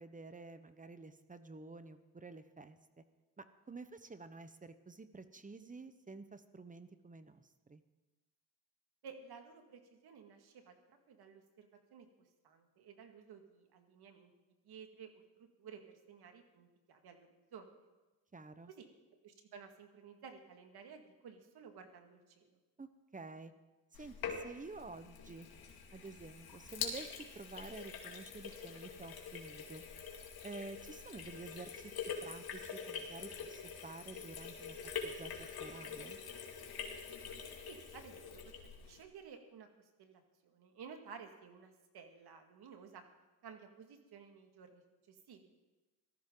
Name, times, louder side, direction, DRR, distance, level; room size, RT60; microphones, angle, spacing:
voice 1, 0.0-3.0 3.4-7.8 18.3-18.7 22.8-23.5 23.9-25.5 25.9-29.8 30.4-36.2, right 3 dB, 20° right, 11 dB, 1.1 m, -50 dB
voice 2, 9.0-10.7 11.1-12.1 12.4-14.3 14.6-17.7 18.7-18.9 19.2-22.6 37.7-38.3 38.6-39.7 40.0-43.0 43.4-44.8 45.1-45.5, right 6 dB, 65° right, 5 dB, 2.2 m, -54 dB
Sink (filling or washing), 23.9-39.0, left 6 dB, 60° left, 2.6 m, -45 dB
18.0 x 14.0 x 3.9 m, 1.1 s
cardioid pair, 80°, 41 cm